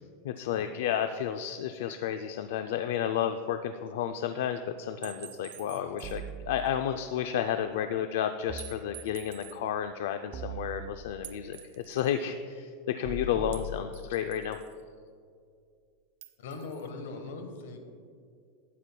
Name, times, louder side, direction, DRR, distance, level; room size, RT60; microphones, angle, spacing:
voice 1, 0.2-11.6 11.9-14.6, left 9 dB, 70° left, 8 dB, 0.4 m, -31 dB
sound 1, 5.0-6.3 6.7-6.8 8.6-9.6 11.2-12.2 13.5-14.8 16.2-16.9, right 13 dB, 70° right, 0.6 m, -48 dB
sound 2, 6.0-7.1 8.5-9.5 10.3-11.4 13.0-14.5, right 2 dB, 30° right, 0.4 m, -41 dB
voice 2, 16.4-17.8, left 3 dB, 85° left, 6 dB, 1.2 m, -41 dB
12.5 x 8.8 x 2.2 m, 2.2 s
supercardioid pair, 170°, 0 cm